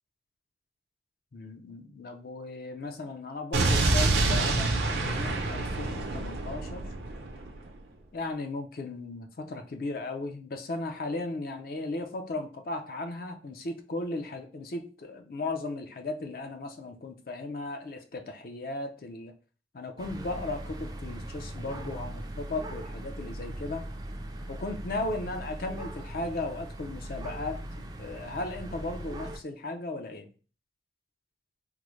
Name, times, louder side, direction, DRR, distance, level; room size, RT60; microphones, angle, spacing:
voice 1, 1.3-6.9 8.1-19.3 19.7-23.9 24.5-27.6 28.0-30.3, left 2 dB, 50° left, 6 dB, 0.4 m, -36 dB
Explosion, 3.5-7.6, right 2 dB, 75° right, 0.6 m, -27 dB
sound 1, 20.0-29.4, right 1 dB, 20° right, 0.3 m, -40 dB
3.6 x 2.0 x 3.0 m, 0.37 s
head